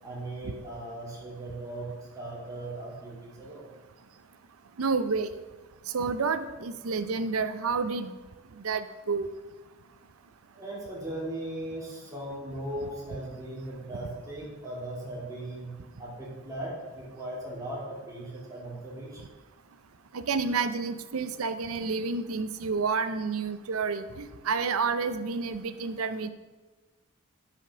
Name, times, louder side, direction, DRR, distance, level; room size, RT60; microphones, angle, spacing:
voice 1, 0.0-3.7 8.6-8.7 10.5-19.2, right 1 dB, 15° right, -5 dB, 2.7 m, -38 dB
voice 2, 4.8-5.3 5.9-8.1 8.6-9.3 20.1-26.3, right 4 dB, 80° right, 11 dB, 0.6 m, -29 dB
8.4 x 5.2 x 6.0 m, 1.2 s
head